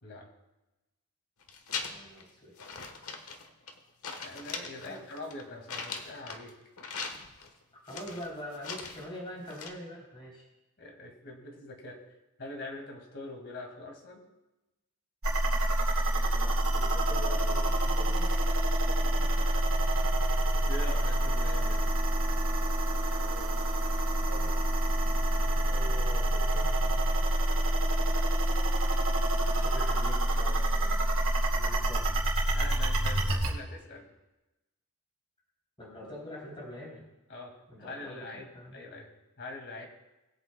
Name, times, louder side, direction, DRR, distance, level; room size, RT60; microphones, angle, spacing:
voice 1, 0.0-0.3 4.2-6.6 10.8-14.3 19.0-19.5 20.6-21.9 32.5-34.1 37.3-38.5 38.7-39.1 39.4-39.9, left 2 dB, 55° left, 2 dB, 2.0 m, -43 dB
sound 1, 1.4-2.2 2.6-3.8 4.0-6.5 6.8-7.5 7.9-9.1 9.4-9.7, left 5 dB, 80° left, 1.2 m, -40 dB
voice 2, 1.9-2.5 4.8-5.0 7.9-10.4 16.1-18.5 18.8-19.0 19.4-19.5 23.2-23.6 24.2-24.6 25.7-27.1 29.2-32.1 35.8-37.0 37.7-38.8, equal, 25° left, -4 dB, 3.4 m, -45 dB
sound 2, 15.2-33.5, right 1 dB, 70° right, 2.5 m, -27 dB
20.5 x 8.3 x 2.2 m, 1.0 s
head